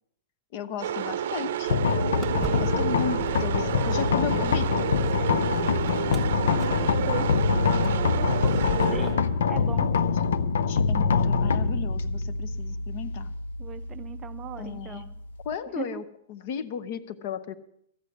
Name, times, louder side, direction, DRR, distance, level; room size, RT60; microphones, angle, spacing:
voice 1, 0.5-1.8 2.6-4.9 10.1-13.3 14.6-15.1 15.4-16.0 16.3-17.6, left 7 dB, 40° left, 14 dB, 0.7 m, -35 dB
sound 1, 0.8-9.4, right 10 dB, 65° right, 0.6 m, -30 dB
sound 2, 1.7-15.5, left 5 dB, 85° left, 0.5 m, -25 dB
Walk footsteps, 2.2-9.1, right 3 dB, ahead, 1.2 m, -39 dB
voice 2, 2.3-2.7 6.3-7.4 8.1-8.9 9.5-10.0 13.6-15.1 15.8-16.0, right 11 dB, 20° right, 10 dB, 0.4 m, -39 dB
13.5 x 8.3 x 6.3 m, 0.72 s
supercardioid pair, 165°, 0 cm